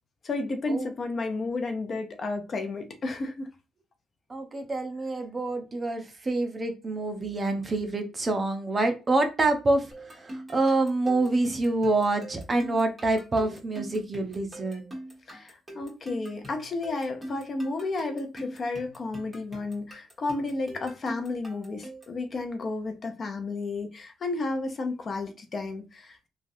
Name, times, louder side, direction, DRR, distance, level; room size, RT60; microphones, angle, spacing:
voice 1, 0.2-3.5 15.3-26.3, left 3 dB, 45° left, 0.6 m, -32 dB
voice 2, 4.3-14.9, right 2 dB, 30° right, 0.7 m, -27 dB
sound 1, 9.9-22.2, right 1 dB, 15° right, 1.4 m, -44 dB
3.2 x 2.3 x 2.6 m
cardioid pair, 90°, 0 cm